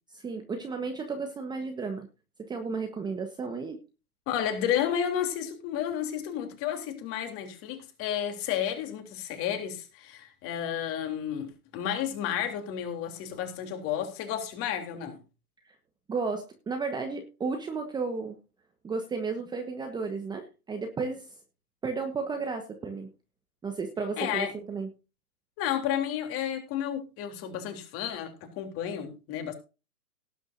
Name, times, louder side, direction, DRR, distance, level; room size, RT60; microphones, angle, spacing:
voice 1, 0.1-2.1 2.5-3.8 15.7-15.8 16.1-18.4 18.8-21.3 21.8-23.1 23.6-24.9, right 4 dB, 10° right, 1.2 m, -33 dB
voice 2, 4.3-15.2 24.2-24.5 25.6-29.5, left 9 dB, 30° left, 3.4 m, -32 dB
18.0 x 9.4 x 2.7 m
hypercardioid pair, 130°, 46 cm